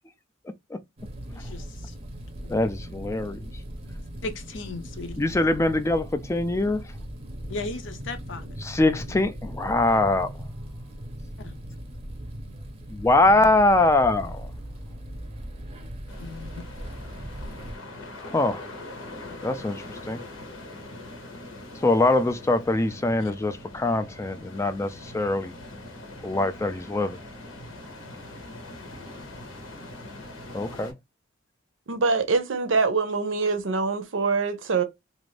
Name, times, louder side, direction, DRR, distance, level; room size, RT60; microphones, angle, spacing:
sound 1, 1.0-17.8, equal, 30° right, 0.6 m, -39 dB
voice 1, 1.3-2.0 4.2-5.2 7.5-8.5 9.1-9.3 11.4-11.6 13.2-13.5 16.2-16.6 23.2-23.3, left 3 dB, 65° left, 0.6 m, -37 dB
voice 2, 2.5-3.4 5.2-6.8 8.6-10.3 12.9-14.5 18.3-18.6 19.4-20.2 21.8-25.5 26.2-27.2 30.5-30.9, left 2 dB, 15° left, 0.3 m, -23 dB
sound 2, 16.1-30.9, left 2 dB, 85° left, 1.0 m, -42 dB
voice 3, 31.9-34.8, right 4 dB, 70° right, 0.6 m, -24 dB
2.5 x 2.5 x 3.1 m
head